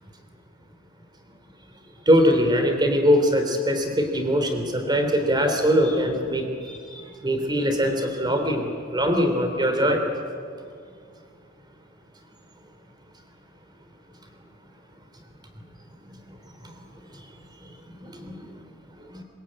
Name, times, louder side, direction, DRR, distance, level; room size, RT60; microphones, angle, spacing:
voice 1, 2.1-6.8 7.2-10.0 18.2-18.4 19.1-19.2, equal, 20° right, 5 dB, 3.3 m, -22 dB
23.0 x 21.0 x 8.9 m, 2.3 s
head